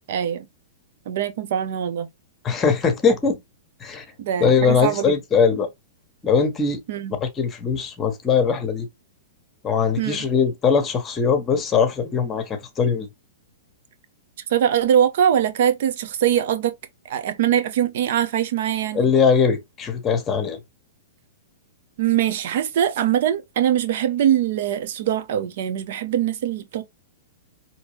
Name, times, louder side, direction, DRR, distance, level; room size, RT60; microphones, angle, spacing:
voice 1, 0.1-0.5 1.1-2.1 4.2-5.2 6.9-7.1 10.0-10.3 14.5-16.7 17.1-19.1 22.0-26.8, right 10 dB, 60° right, 0.9 m, -22 dB
voice 2, 2.4-3.4 3.8-4.0 4.4-5.7 6.2-6.8 7.2-8.9 9.6-13.1 18.9-20.6, left 6 dB, 20° left, 1.3 m, -20 dB
4.4 x 3.1 x 3.3 m
hypercardioid pair, 120°, 0 cm